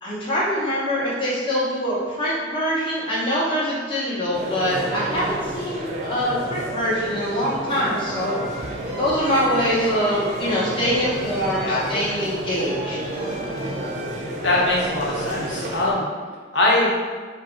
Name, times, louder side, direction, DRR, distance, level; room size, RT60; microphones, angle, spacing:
voice 1, 0.0-8.4 9.0-13.0, equal, 25° left, -7 dB, 1.0 m, -24 dB
sound 1, 4.3-15.9, right 1 dB, 40° right, 0.5 m, -31 dB
sound 2, 7.9-14.2, right 1 dB, 5° right, 1.2 m, -39 dB
voice 2, 14.4-16.1 16.5-16.9, left 2 dB, 85° left, -5 dB, 1.1 m, -21 dB
4.8 x 2.3 x 4.5 m, 1.5 s
head